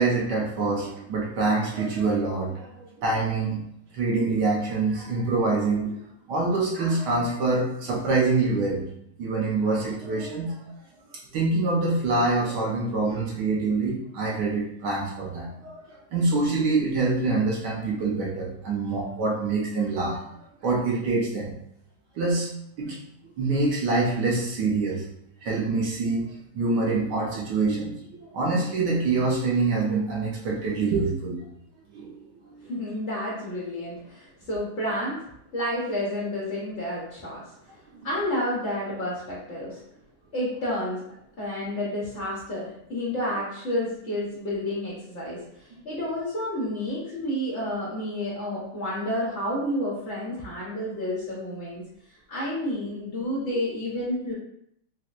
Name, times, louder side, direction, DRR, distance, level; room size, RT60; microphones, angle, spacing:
voice 1, 0.0-3.6 3.9-5.9 6.3-8.8 9.2-10.5 11.3-20.2 20.6-21.5 22.2-22.5 22.8-23.0 23.4-25.0 25.4-26.2 26.5-31.5 31.9-32.2 37.9-38.0 41.6-41.7, right 3 dB, 70° right, -3 dB, 1.0 m, -25 dB
voice 2, 32.6-35.3 35.5-37.4 38.0-39.8 40.3-51.8 52.3-54.3, left 1 dB, 85° left, -7 dB, 0.6 m, -30 dB
4.2 x 2.1 x 2.4 m, 0.75 s
omnidirectional pair, 2.4 m